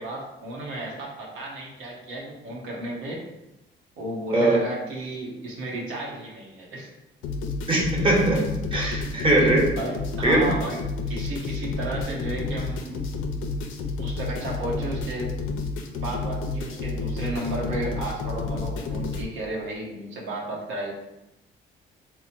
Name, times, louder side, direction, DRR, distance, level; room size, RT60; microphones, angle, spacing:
voice 1, 0.0-3.2 4.0-6.9 9.7-10.8 11.1-12.9 14.0-15.3 15.9-20.9, right 1 dB, 85° right, -3 dB, 0.8 m, -33 dB
sound 1, 7.2-19.2, left 3 dB, 90° left, 0.4 m, -30 dB
voice 2, 7.7-9.7 10.2-10.5, right 1 dB, 25° right, -3 dB, 1.1 m, -21 dB
3.0 x 2.1 x 4.1 m, 0.92 s
cardioid pair, 90°, 20 cm